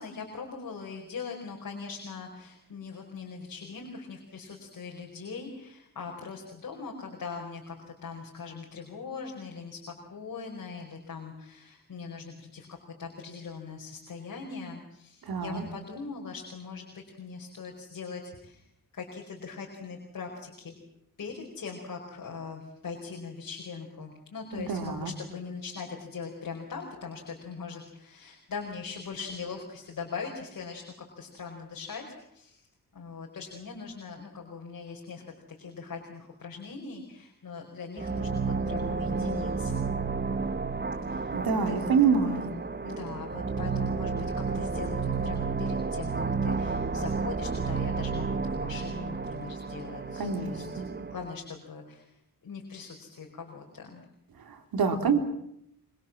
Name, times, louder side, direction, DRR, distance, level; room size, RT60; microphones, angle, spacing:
voice 1, 0.0-12.7 13.0-18.6 18.9-20.7 21.2-30.8 31.2-32.6 32.9-39.9 41.1-41.3 41.7-41.8 42.2-42.5 42.8-50.7 51.1-52.1 52.4-54.0, left 5 dB, 60° left, 0 dB, 5.2 m, -41 dB
voice 2, 15.2-15.6 24.5-25.1 41.3-42.5 50.2-50.9 54.4-55.2, right 5 dB, 90° right, 6 dB, 3.7 m, -27 dB
sound 1, 38.0-51.3, right 4 dB, 30° right, 1.4 m, -31 dB
25.5 x 25.0 x 7.5 m, 0.76 s
wide cardioid pair, 115°, 35 cm